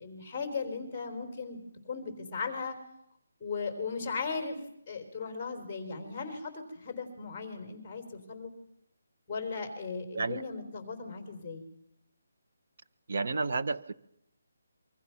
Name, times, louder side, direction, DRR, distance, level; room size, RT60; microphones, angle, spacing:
voice 1, 0.0-2.8 3.4-4.6 4.9-8.5 9.3-11.6, left 4 dB, 15° left, 5 dB, 3.6 m, -37 dB
voice 2, 13.1-13.9, right 3 dB, 55° right, 11 dB, 1.0 m, -31 dB
26.5 x 23.5 x 5.8 m, 0.77 s
hypercardioid pair, 175°, 0 cm